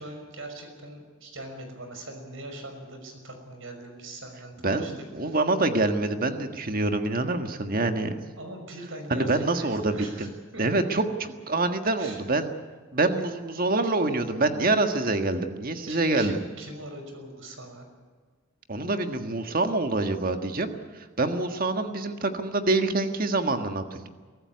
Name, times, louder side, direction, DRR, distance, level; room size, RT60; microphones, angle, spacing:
voice 1, 0.0-5.4 8.4-10.6 12.0-12.2 13.1-13.2 13.8-13.9 15.9-17.9, right 1 dB, 65° right, 5 dB, 5.8 m, -41 dB
voice 2, 4.6-8.1 9.1-10.3 10.6-11.0 11.5-12.5 12.9-16.4 18.7-20.8 21.2-24.1, right 2 dB, 45° right, 7 dB, 1.6 m, -26 dB
23.5 x 14.5 x 9.6 m, 1.5 s
head